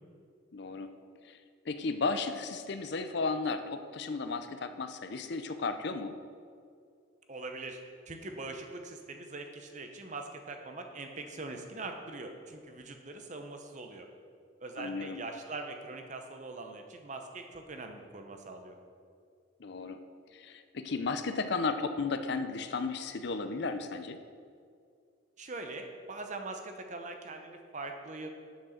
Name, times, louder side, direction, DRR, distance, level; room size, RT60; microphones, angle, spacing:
voice 1, 0.5-0.9 1.2-1.4 1.7-6.2 14.8-15.2 19.6-20.0 20.3-24.2, left 4 dB, 60° left, 9 dB, 0.5 m, -34 dB
voice 2, 7.3-7.8 8.1-14.1 14.6-18.8 25.4-28.3, right 3 dB, 40° right, 5 dB, 0.8 m, -42 dB
7.2 x 6.2 x 6.4 m, 2.3 s
head